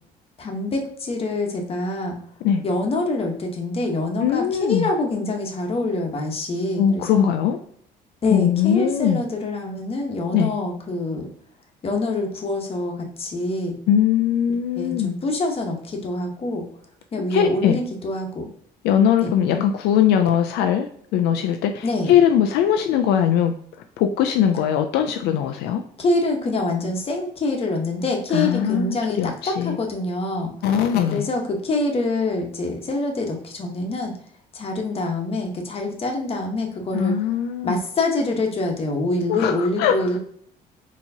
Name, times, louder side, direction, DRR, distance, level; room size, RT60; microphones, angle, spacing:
voice 1, 0.4-2.2 2.6-7.3 8.2-11.3 11.8-13.8 14.8-16.6 17.1-18.5 19.2-19.3 21.8-22.1 26.0-30.5 31.1-34.1 34.5-37.2 37.6-40.2, left 2 dB, 35° left, 2 dB, 1.0 m, -25 dB
voice 2, 4.2-4.9 6.8-7.6 8.3-9.2 10.3-10.5 13.9-15.1 17.3-17.8 18.8-23.5 24.0-25.8 28.3-29.8 30.6-31.3 36.9-37.8 39.3-40.2, left 9 dB, 85° left, 6 dB, 0.4 m, -20 dB
4.5 x 2.9 x 2.7 m, 0.64 s
cardioid pair, 110°, 17 cm